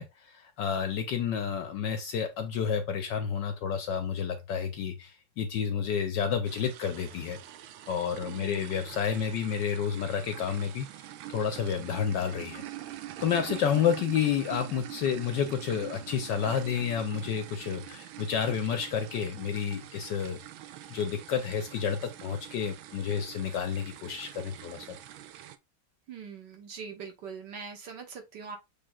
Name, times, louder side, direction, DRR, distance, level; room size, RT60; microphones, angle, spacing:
voice 1, 0.0-7.4 7.9-10.9 11.3-12.6 13.2-20.4 20.9-25.0, left 7 dB, 70° left, 1.1 m, -30 dB
sound 1, 6.5-25.6, right 13 dB, 75° right, 1.4 m, -44 dB
voice 2, 8.2-8.7 26.1-28.6, right 6 dB, 60° right, 1.5 m, -42 dB
6.7 x 3.3 x 2.3 m
omnidirectional pair, 2.4 m